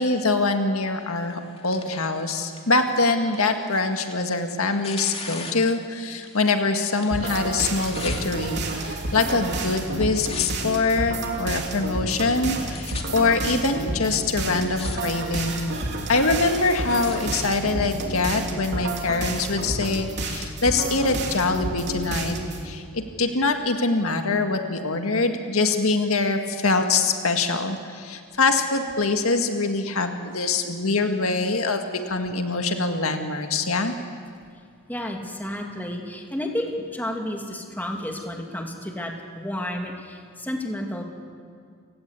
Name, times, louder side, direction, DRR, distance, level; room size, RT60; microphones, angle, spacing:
voice 1, 0.0-15.7 16.1-22.4 22.6-33.9, left 3 dB, 80° left, 5 dB, 1.9 m, -24 dB
Tearing, 1.2-6.6 6.9-8.2 9.0-9.5 9.8-10.7 11.4-11.5 12.2-12.3 12.5-13.0 13.8-13.9 14.4-15.0 15.3-15.7 16.3-17.2 18.0-18.1, left 5 dB, 30° left, 2.5 m, -40 dB
sound 1, 7.1-22.6, right 2 dB, 55° right, 3.1 m, -30 dB
voice 2, 34.9-41.0, left 1 dB, 10° left, 1 dB, 2.7 m, -31 dB
29.5 x 18.0 x 8.4 m, 2.1 s
head